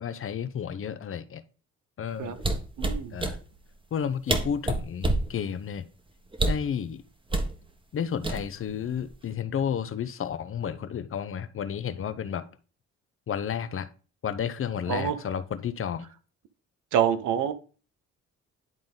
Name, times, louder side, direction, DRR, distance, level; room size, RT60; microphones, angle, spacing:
voice 1, 0.0-1.4 2.0-2.4 3.1-3.4 3.9-5.9 6.4-7.0 7.9-12.5 13.3-13.9 14.2-16.1, left 8 dB, 45° left, 0.7 m, -32 dB
sound 1, 2.4-3.4 4.0-4.1 4.3-5.3 6.3-6.7 7.3-7.5 8.2-8.7 9.0-9.3, right 2 dB, 15° right, 1.2 m, -26 dB
voice 2, 2.8-3.2 14.9-15.2 16.9-17.5, right 9 dB, 80° right, 0.9 m, -26 dB
10.5 x 3.8 x 3.8 m
cardioid pair, 90°, 30 cm